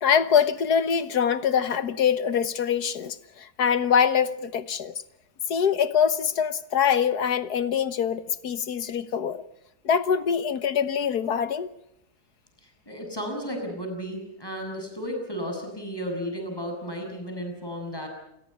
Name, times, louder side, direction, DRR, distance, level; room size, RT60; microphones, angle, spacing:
voice 1, 0.0-4.9 5.5-9.4 9.9-11.7, left 7 dB, 75° left, 1.8 m, -24 dB
voice 2, 12.9-18.1, equal, 15° left, 7.9 m, -33 dB
29.0 x 21.5 x 5.7 m
omnidirectional pair, 1.7 m